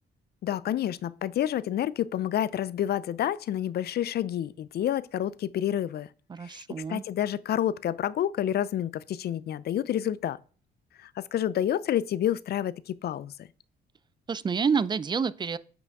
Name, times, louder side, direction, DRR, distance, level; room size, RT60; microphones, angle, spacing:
voice 1, 0.4-6.1 6.4-6.6 6.9-10.4 11.0-13.5, left 11 dB, 55° left, 0.4 m, -29 dB
voice 2, 6.3-7.0 14.3-15.6, right 6 dB, 20° right, 0.4 m, -28 dB
8.4 x 5.0 x 3.5 m
cardioid pair, 90°, 20 cm